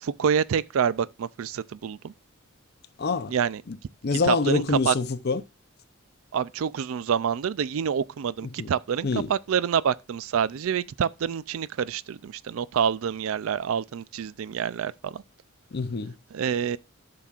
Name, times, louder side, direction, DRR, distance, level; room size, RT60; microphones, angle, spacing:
voice 1, 0.0-2.1 3.3-3.6 4.3-4.9 6.3-15.2 16.3-16.8, right 7 dB, 70° right, 0.4 m, -27 dB
voice 2, 3.0-3.3 3.7-3.8 4.0-5.4 8.4-8.7 9.0-9.3 15.7-16.2, left 4 dB, 50° left, 0.5 m, -26 dB
13.5 x 5.9 x 2.4 m
head